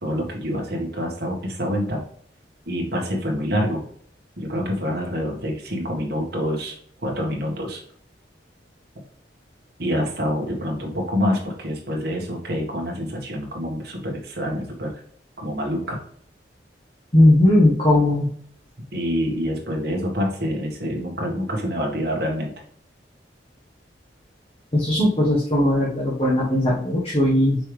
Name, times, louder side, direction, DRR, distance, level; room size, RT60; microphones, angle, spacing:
voice 1, 0.0-2.0 2.7-3.9 4.4-6.8 7.0-7.8 9.0-9.1 9.8-14.9 15.4-16.0 18.9-22.5, equal, 60° right, -1 dB, 1.8 m, -26 dB
voice 2, 17.1-18.3 24.7-27.6, left 1 dB, 35° left, -5 dB, 1.5 m, -18 dB
6.1 x 4.7 x 3.4 m, 0.62 s
head